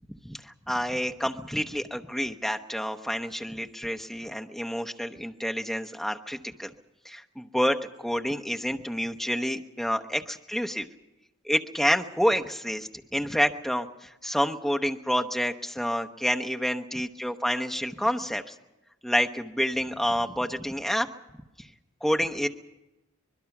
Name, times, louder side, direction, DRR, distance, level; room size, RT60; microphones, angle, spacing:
voice 1, 0.2-6.7 7.0-10.9 11.4-18.5 19.0-21.1 21.6-21.7 22.0-22.5, equal, ahead, 5 dB, 0.9 m, -28 dB
24.5 x 21.0 x 6.0 m, 1.0 s
head